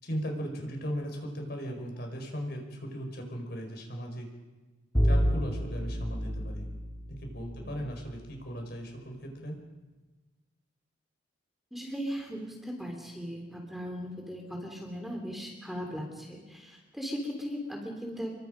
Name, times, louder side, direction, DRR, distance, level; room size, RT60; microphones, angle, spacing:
voice 1, 0.0-4.3 5.0-6.7 7.1-9.6, equal, 55° left, 2 dB, 5.1 m, -37 dB
Bowed string instrument, 5.0-8.0, equal, 15° left, 2.9 m, -29 dB
voice 2, 11.7-18.3, equal, ahead, 1 dB, 3.3 m, -38 dB
29.5 x 23.0 x 5.2 m, 1.2 s
head